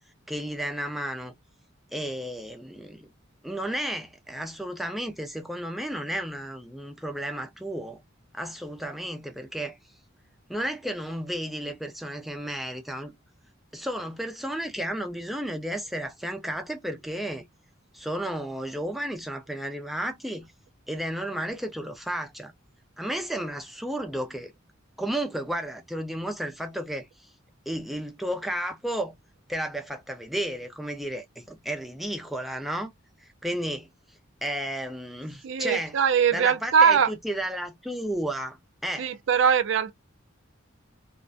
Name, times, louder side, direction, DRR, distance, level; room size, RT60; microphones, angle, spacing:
voice 1, 0.3-1.3 1.9-3.1 3.4-8.0 8.3-9.8 10.5-13.1 13.7-17.4 17.9-20.5 20.9-22.5 23.0-24.5 25.0-27.1 27.7-29.2 29.5-32.9 33.2-33.9 34.4-36.0 36.3-38.6 38.8-39.1, right 1 dB, ahead, 0.4 m, -33 dB
voice 2, 35.4-37.1 39.0-39.9, right 7 dB, 65° right, 0.3 m, -21 dB
2.4 x 2.1 x 2.4 m
head